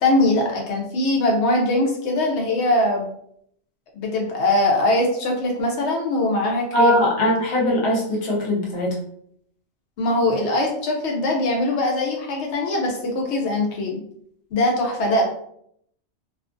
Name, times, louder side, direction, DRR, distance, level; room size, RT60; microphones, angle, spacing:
voice 1, 0.0-3.1 3.9-7.0 10.0-14.0 14.5-15.2, left 1 dB, 75° left, 0 dB, 0.9 m, -21 dB
voice 2, 6.7-9.0, equal, 30° left, -3 dB, 0.6 m, -20 dB
2.4 x 2.4 x 2.4 m, 0.68 s
omnidirectional pair, 1.2 m